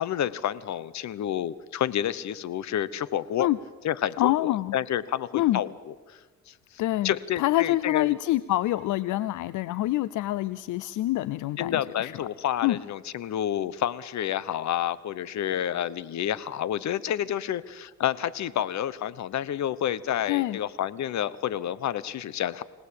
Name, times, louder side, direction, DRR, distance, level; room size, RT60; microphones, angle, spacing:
voice 1, 0.0-3.5 3.8-5.7 6.1-6.2 6.5-6.6 7.0-8.2 11.6-22.6, left 10 dB, 65° left, 18 dB, 1.1 m, -29 dB
voice 2, 4.2-4.7 5.3-5.6 6.8-12.1 12.6-12.8 20.3-20.6, left 16 dB, 85° left, 17 dB, 0.6 m, -26 dB
25.5 x 18.0 x 8.7 m, 1.4 s
cardioid pair, 90°, 30 cm